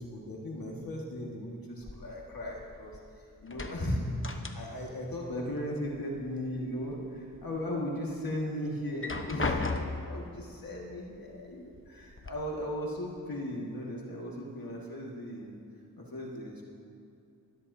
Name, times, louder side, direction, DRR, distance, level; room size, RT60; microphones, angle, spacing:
voice 1, 0.0-3.0 3.4-9.8 10.1-15.6 16.0-16.6, left 1 dB, 65° left, -3 dB, 1.9 m, -37 dB
sound 1, 1.8-3.1 3.4-5.0 5.3-6.3 6.7-7.5 7.9-8.0 8.8-10.2 11.2-11.3 11.7-12.3, left 3 dB, 35° left, 1.0 m, -36 dB
19.5 x 13.5 x 2.8 m, 2.5 s
wide cardioid pair, 45°, 37 cm